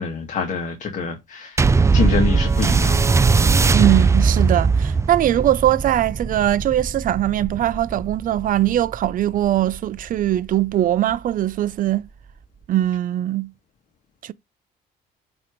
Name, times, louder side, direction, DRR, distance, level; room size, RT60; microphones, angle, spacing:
voice 1, 0.0-1.6 1.9-3.0, left 5 dB, 45° left, 1.9 m, -26 dB
sound 1, 1.6-10.3 11.1-11.2, right 4 dB, 15° right, 0.4 m, -20 dB
voice 2, 3.7-12.0 12.7-13.5 14.2-14.3, right 12 dB, 55° right, 0.6 m, -21 dB
8.6 x 3.1 x 5.2 m
cardioid pair, 110°, 17 cm